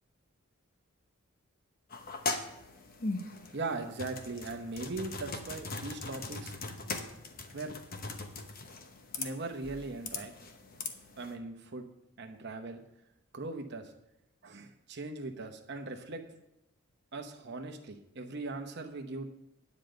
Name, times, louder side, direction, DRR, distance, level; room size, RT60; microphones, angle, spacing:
sound 1, 1.9-11.3, left 3 dB, 40° left, 0.9 m, -40 dB
voice 1, 3.5-6.5 7.5-7.7 9.2-10.3 11.2-11.8 12.2-12.8 13.3-13.9 14.4-16.2 17.1-19.3, right 3 dB, 50° right, 5 dB, 0.8 m, -39 dB
9.9 x 5.1 x 7.8 m, 0.87 s
head